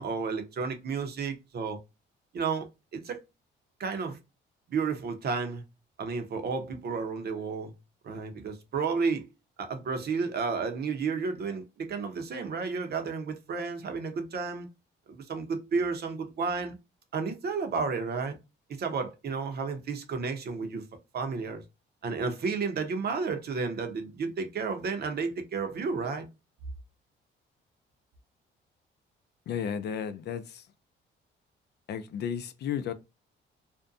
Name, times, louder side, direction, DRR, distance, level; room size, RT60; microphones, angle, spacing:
voice 1, 0.0-1.8 2.3-2.7 2.9-3.2 3.8-4.2 4.7-5.6 6.0-7.7 8.0-9.3 9.6-14.7 15.1-16.8 17.1-18.4 18.8-20.8 21.1-21.6 22.0-26.3, right 5 dB, 55° right, 0.7 m, -32 dB
voice 2, 29.5-30.6 31.9-32.9, left 8 dB, 60° left, 0.4 m, -33 dB
2.5 x 2.2 x 2.5 m
cardioid pair, 90°, 20 cm